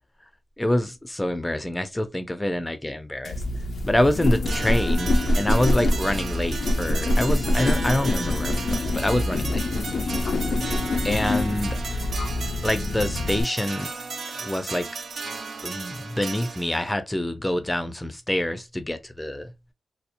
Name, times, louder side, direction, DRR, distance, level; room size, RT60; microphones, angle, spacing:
voice 1, 0.6-3.4 3.8-9.7 10.0-10.1 11.0-11.8 12.6-13.9 14.3-14.9 15.6-19.5, left 1 dB, 15° left, 0.5 m, -26 dB
sound 1, 3.2-13.4, left 1 dB, 70° left, 0.4 m, -25 dB
sound 2, 4.5-16.9, right 4 dB, 70° right, 0.5 m, -35 dB
2.8 x 2.0 x 2.5 m
cardioid pair, 60°, 0 cm